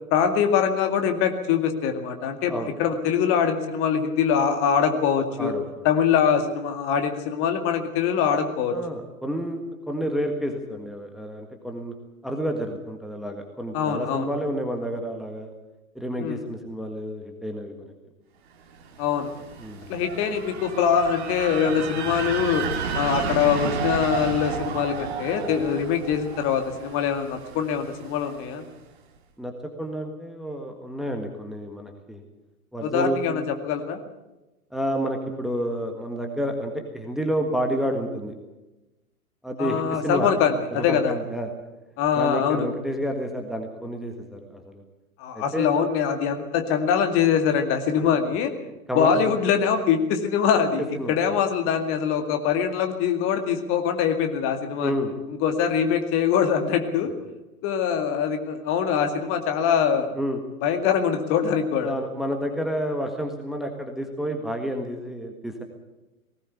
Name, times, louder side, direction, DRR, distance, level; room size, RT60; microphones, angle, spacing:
voice 1, 0.1-5.5 5.8-8.8 13.7-14.3 16.2-16.4 19.0-19.3 19.9-22.7 22.9-28.6 32.8-34.0 39.6-41.1 42.0-42.7 45.2-48.5 48.9-54.9 55.4-57.1 57.6-60.1 60.6-61.9, left 7 dB, 30° left, 6 dB, 2.2 m, -23 dB
voice 2, 5.4-5.8 8.7-11.9 12.2-15.5 15.9-17.9 19.6-19.9 29.4-29.5 29.8-32.2 32.7-33.2 34.7-38.3 39.4-40.3 40.7-41.5 42.1-44.8 45.3-45.7 48.9-49.4 50.9-51.3 54.8-55.1 60.1-60.4 61.8-65.6, equal, ahead, 3 dB, 1.6 m, -30 dB
sound 1, 18.8-28.6, right 6 dB, 45° right, 2.2 m, -32 dB
19.5 x 17.5 x 8.2 m, 1.0 s
figure-of-eight pair, 105°, 44 cm